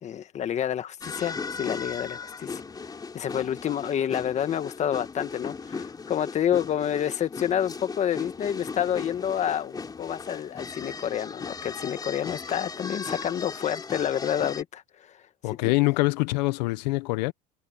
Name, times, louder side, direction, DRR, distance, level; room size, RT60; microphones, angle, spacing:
voice 1, 0.0-15.2 15.6-15.8, left 9 dB, 35° left, 1.4 m, -29 dB
sound 1, 1.0-14.6, left 4 dB, 20° left, 3.6 m, -37 dB
voice 2, 15.4-17.3, left 23 dB, 90° left, 1.0 m, -24 dB
cardioid pair, 130°, 21 cm